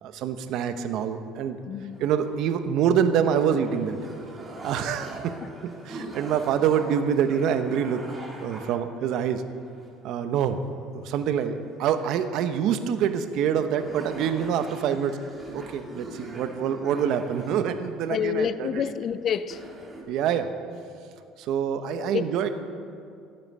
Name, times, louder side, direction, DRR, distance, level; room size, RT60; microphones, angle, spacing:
voice 1, 0.0-1.6 2.0-4.0 4.6-5.3 5.8-9.4 10.0-10.6 11.0-15.2 15.5-18.8 20.1-20.5 21.4-22.5, right 8 dB, 65° right, 0.9 m, -26 dB
voice 2, 1.7-2.0 18.1-19.6 22.0-22.3, left 8 dB, 45° left, 0.5 m, -28 dB
sound 1, 1.9-2.8 3.2-8.7 9.5-10.2 10.5-10.6 11.2-12.3 13.0-13.1 13.4-13.5 13.7-18.1 19.0-19.1 19.4-20.0, right 1 dB, 10° right, 2.3 m, -43 dB
14.0 x 8.9 x 5.4 m
cardioid pair, 110°, 0 cm